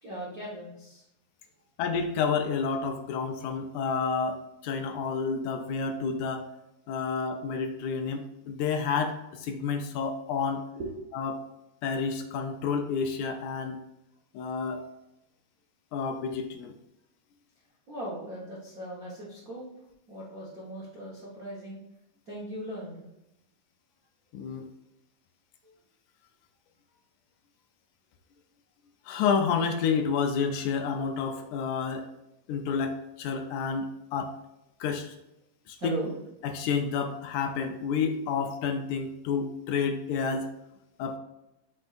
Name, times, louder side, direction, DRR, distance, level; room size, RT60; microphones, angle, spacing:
voice 1, 0.0-1.0 10.7-10.9 17.9-19.6 20.1-21.8 22.3-23.0 35.8-36.1, right 1 dB, 75° right, -5 dB, 0.8 m, -38 dB
voice 2, 1.8-6.4 6.9-10.6 11.1-11.4 11.8-13.8 14.3-14.8 15.9-16.7 24.3-24.6 29.1-32.1 32.5-34.3 34.8-35.1 35.7-35.9 36.4-40.5 41.0-41.2, left 5 dB, 75° left, 5 dB, 1.8 m, -30 dB
8.3 x 5.3 x 2.5 m, 0.88 s
omnidirectional pair, 3.8 m